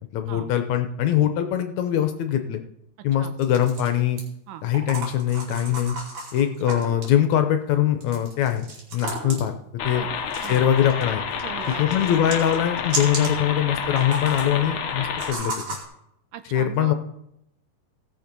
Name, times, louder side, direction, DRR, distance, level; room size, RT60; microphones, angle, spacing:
voice 1, 0.1-2.6 3.0-4.2 4.6-6.0 6.3-8.7 8.9-9.5 9.8-10.0 10.5-11.2 11.8-15.5 16.5-16.9, left 10 dB, 70° left, 7 dB, 1.9 m, -22 dB
sound 1, 3.4-4.2 4.7-7.1 8.0-9.6 10.3-11.0 11.3-13.4 13.8-14.5 15.2-15.8, right 3 dB, 65° right, 4.1 m, -34 dB
sound 2, 9.8-15.3, left 6 dB, 90° left, 1.1 m, -29 dB
voice 2, 11.4-12.1 16.3-16.9, right 11 dB, 80° right, 10 dB, 2.4 m, -39 dB
16.5 x 6.7 x 5.3 m, 0.80 s
omnidirectional pair, 3.7 m